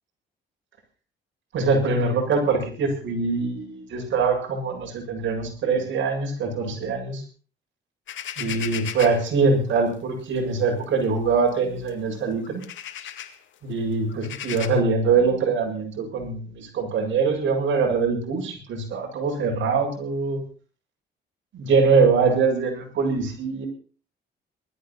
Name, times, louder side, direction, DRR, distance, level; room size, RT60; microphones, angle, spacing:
voice 1, 1.5-7.2 8.4-12.6 13.6-20.4 21.5-23.7, right 4 dB, 70° right, 2 dB, 7.5 m, -23 dB
sound 1, 8.1-9.3 10.4-10.6 11.0-11.1 11.9-12.0 12.4-13.4 14.1-14.7, left 10 dB, 70° left, 2.2 m, -35 dB
20.0 x 14.0 x 4.3 m, 0.38 s
cardioid pair, 90°, 20 cm